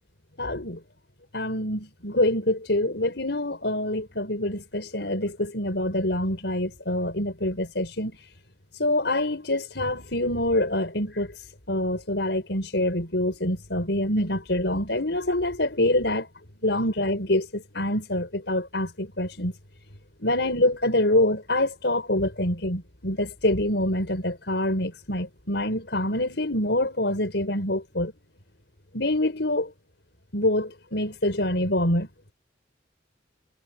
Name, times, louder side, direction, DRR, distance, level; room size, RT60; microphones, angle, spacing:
voice 1, 0.4-0.8 1.3-8.2 8.8-11.3 11.7-16.3 16.6-19.5 20.2-28.1 28.9-29.7 30.3-32.3, left 1 dB, 70° left, 5.5 m, -26 dB
head